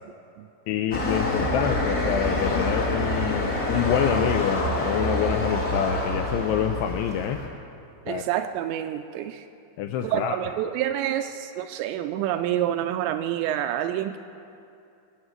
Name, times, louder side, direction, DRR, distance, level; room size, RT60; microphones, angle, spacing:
voice 1, 0.7-7.4 8.1-8.2 9.8-10.4, left 9 dB, 85° left, 5 dB, 2.4 m, -26 dB
sound 1, 0.9-7.5, left 1 dB, 50° left, 1.1 m, -26 dB
voice 2, 8.1-9.5 10.0-14.2, right 11 dB, 85° right, 8 dB, 2.6 m, -28 dB
21.0 x 8.1 x 7.9 m, 2.6 s
omnidirectional pair, 5.4 m